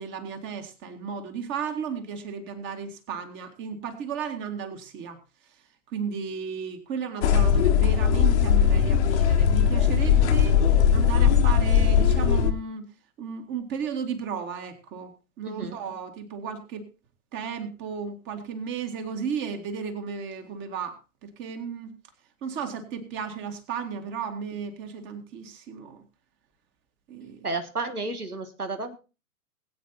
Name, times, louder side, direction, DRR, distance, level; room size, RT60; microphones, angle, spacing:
voice 1, 0.0-5.2 5.9-10.6 10.9-12.9 13.2-15.1 15.4-16.9 17.3-21.9 22.4-26.0 27.1-27.5, right 6 dB, 25° right, 7 dB, 1.9 m, -34 dB
sound 1, 7.2-12.5, left 7 dB, 50° left, 1.2 m, -19 dB
voice 2, 15.4-15.8 27.4-29.0, right 3 dB, 85° right, 8 dB, 1.6 m, -32 dB
21.0 x 8.7 x 2.9 m, 0.31 s
figure-of-eight pair, 110°, 44 cm